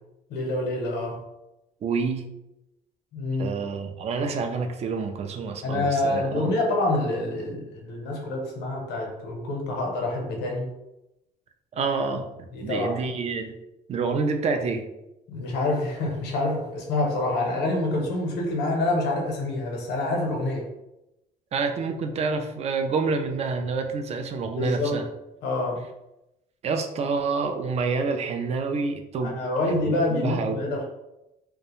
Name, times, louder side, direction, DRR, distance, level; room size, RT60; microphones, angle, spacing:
voice 1, 0.3-1.2 3.1-3.6 5.6-10.7 12.5-13.0 15.3-20.7 24.6-25.1 25.4-25.8 29.2-30.8, left 2 dB, 85° left, 1 dB, 0.7 m, -27 dB
voice 2, 1.8-2.3 3.4-6.5 11.7-13.5 13.9-14.8 21.5-25.0 26.6-29.4 29.7-30.7, right 4 dB, 40° right, 6 dB, 0.4 m, -28 dB
2.4 x 2.1 x 2.9 m, 0.92 s
cardioid pair, 110°, 17 cm